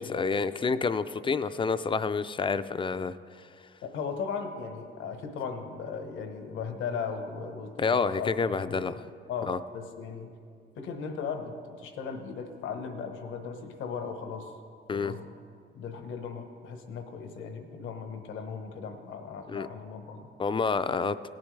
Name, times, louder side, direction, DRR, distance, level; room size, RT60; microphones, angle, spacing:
voice 1, 0.0-3.2 7.8-8.9 9.5-9.6 14.9-15.1 19.5-19.7 20.4-21.2, left 5 dB, 25° left, 13 dB, 0.4 m, -28 dB
voice 2, 3.8-10.3 10.8-14.5 14.9-15.3 15.7-20.3, left 5 dB, 80° left, 6 dB, 1.1 m, -37 dB
17.5 x 10.5 x 3.3 m, 2.2 s
cardioid pair, 90°, 20 cm